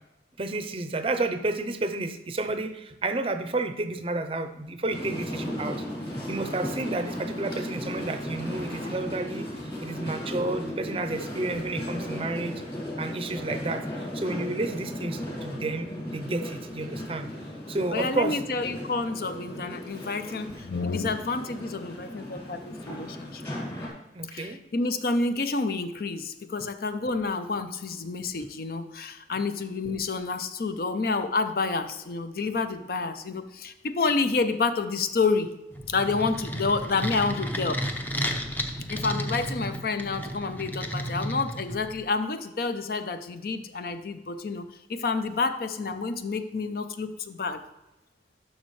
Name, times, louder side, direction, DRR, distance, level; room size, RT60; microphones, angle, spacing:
voice 1, 0.4-5.8 6.3-9.5 9.8-12.5 13.0-13.8 14.1-17.3 17.7-18.4 24.1-24.6, right 2 dB, 30° right, 8 dB, 0.6 m, -31 dB
sound 1, 4.9-23.9, equal, 25° left, 2.6 m, -36 dB
voice 2, 17.9-23.5 24.3-35.5 35.9-37.8 38.9-47.6, left 4 dB, 55° left, 10 dB, 0.5 m, -29 dB
sound 2, 35.7-42.0, equal, 10° left, 0.6 m, -33 dB
11.0 x 6.2 x 3.2 m, 0.97 s
head